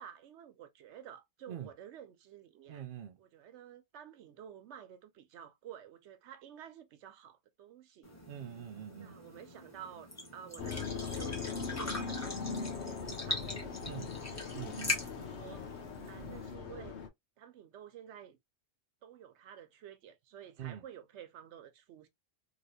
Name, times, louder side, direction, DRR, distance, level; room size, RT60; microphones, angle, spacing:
voice 1, 0.0-2.9 3.2-8.2 9.0-14.4 15.0-15.7 16.1-17.0 17.4-18.4 19.0-22.1, right 9 dB, 85° right, 0.9 m, -51 dB
voice 2, 2.7-3.2 8.3-9.2 13.8-14.1 14.5-15.0 20.6-20.8, right 10 dB, 60° right, 0.7 m, -44 dB
sound 1, 8.0-16.5, left 2 dB, 15° left, 1.1 m, -42 dB
sound 2, 10.6-17.1, left 5 dB, 80° left, 1.0 m, -40 dB
3.1 x 2.9 x 2.6 m
omnidirectional pair, 1.1 m